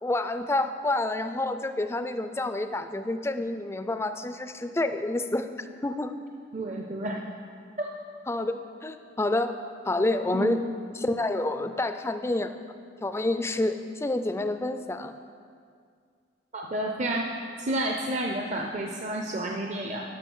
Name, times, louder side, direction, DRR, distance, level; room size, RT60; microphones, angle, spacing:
voice 1, 0.0-5.5 5.8-6.1 8.3-9.5 9.9-10.6 11.0-12.5 13.0-15.1, left 2 dB, 15° left, 9 dB, 0.4 m, -28 dB
voice 2, 6.5-7.2 7.8-7.9 10.3-10.6 16.5-17.3 17.6-20.0, right 1 dB, 40° right, 1 dB, 0.6 m, -30 dB
12.0 x 6.0 x 5.4 m, 2.2 s
head